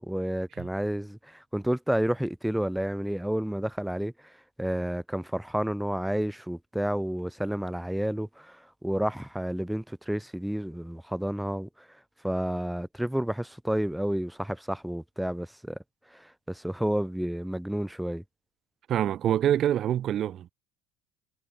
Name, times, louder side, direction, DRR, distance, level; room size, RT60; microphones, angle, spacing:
voice 1, 0.0-11.9 12.2-15.8 16.1-18.2, right 1 dB, 5° right, 7.1 m, -30 dB
voice 2, 18.9-20.5, right 11 dB, 50° right, 1.1 m, -25 dB
supercardioid pair, 90°, 0 cm